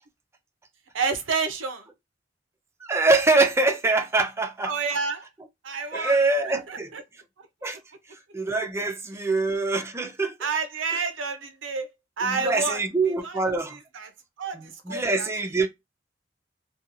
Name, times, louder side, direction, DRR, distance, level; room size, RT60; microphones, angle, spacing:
voice 1, 0.9-1.9 4.7-5.2 5.6-7.0 10.4-11.9 12.2-13.4 13.7-14.1 14.4-15.3, right 4 dB, 85° right, 0.6 m, -30 dB
voice 2, 2.9-4.7 5.9-6.9 7.6-7.8 8.3-10.3 12.2-13.7 14.6-15.7, right 3 dB, 15° right, 0.4 m, -24 dB
2.8 x 2.2 x 2.5 m
head